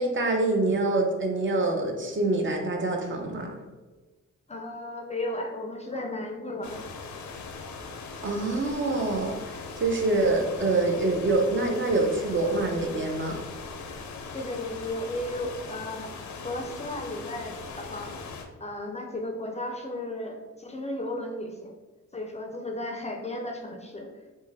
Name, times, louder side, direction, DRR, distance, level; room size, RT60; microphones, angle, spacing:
voice 1, 0.0-3.6 8.2-13.4, right 2 dB, 40° right, 2 dB, 0.6 m, -26 dB
voice 2, 4.5-6.8 14.3-18.2 18.6-21.7 22.1-24.1, left 1 dB, 20° left, 2 dB, 0.5 m, -34 dB
sound 1, 6.6-18.5, left 4 dB, 70° left, 0.5 m, -40 dB
3.3 x 2.1 x 3.3 m, 1.2 s
supercardioid pair, 55°, 31 cm